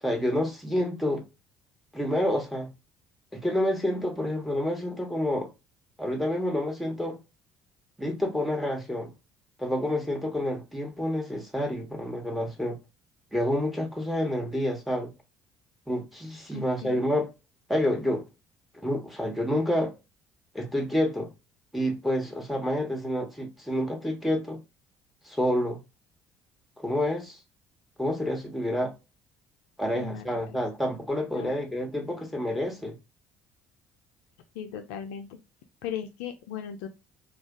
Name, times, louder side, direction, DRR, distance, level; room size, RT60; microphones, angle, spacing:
voice 1, 0.0-1.2 1.9-2.7 3.3-5.5 6.0-7.2 8.0-9.1 9.6-12.8 13.3-15.1 15.9-17.3 17.7-18.2 18.8-19.9 20.5-21.3 21.7-24.6 25.3-25.8 26.8-27.4 28.0-28.9 29.8-33.0, left 1 dB, ahead, 1.1 m, -28 dB
voice 2, 16.5-17.0 29.9-30.6 31.3-31.6 34.5-35.3 35.8-36.9, left 9 dB, 75° left, 0.4 m, -37 dB
2.4 x 2.3 x 3.7 m
hypercardioid pair, 55°, 9 cm